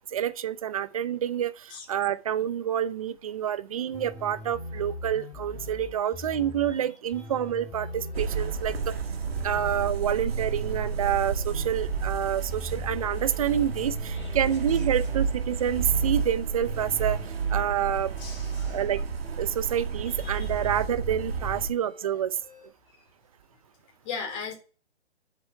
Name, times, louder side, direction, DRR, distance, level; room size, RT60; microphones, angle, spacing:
voice 1, 0.1-8.9 9.4-18.1 18.7-19.0 19.4-22.4, right 9 dB, 30° right, 0.7 m, -28 dB
sound 1, 3.9-19.8 20.4-22.7, left 2 dB, 5° left, 3.1 m, -41 dB
sound 2, 8.1-21.7, right 6 dB, 60° right, 2.0 m, -31 dB
voice 2, 18.2-18.8 20.1-20.5 24.0-24.5, left 6 dB, 25° left, 4.3 m, -38 dB
8.0 x 6.9 x 6.9 m
hypercardioid pair, 155°, 34 cm